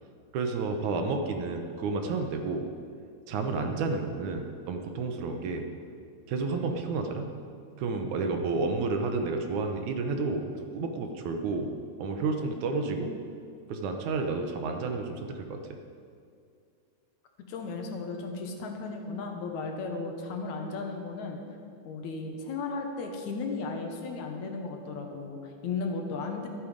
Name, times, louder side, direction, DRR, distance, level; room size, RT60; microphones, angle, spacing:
voice 1, 0.3-2.7 3.3-5.7 6.3-7.3 7.8-11.7 12.0-13.1 13.7-15.6, right 3 dB, 75° right, 5 dB, 2.3 m, -31 dB
voice 2, 17.5-21.4 21.9-26.5, left 4 dB, 70° left, 3 dB, 2.4 m, -35 dB
12.5 x 12.5 x 5.1 m, 2.3 s
omnidirectional pair, 3.6 m